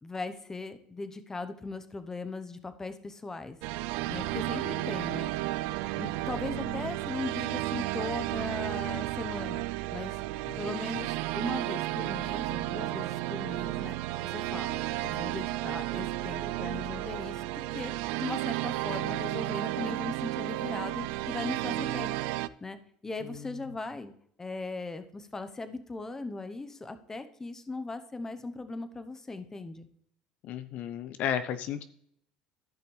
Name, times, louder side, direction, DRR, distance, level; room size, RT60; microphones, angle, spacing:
voice 1, 0.0-3.6 4.1-5.3 5.9-9.7 9.9-10.2 10.6-14.0 14.3-17.9 18.2-22.2 22.6-22.8 23.0-24.1 24.4-29.9, left 3 dB, 15° left, 10 dB, 0.8 m, -38 dB
sound 1, 3.6-22.5, right 16 dB, 75° right, 0.3 m, -33 dB
voice 2, 10.6-11.0 30.4-31.8, left 9 dB, 60° left, 11 dB, 0.6 m, -34 dB
14.5 x 5.7 x 3.3 m, 0.67 s
supercardioid pair, 100°, 3 cm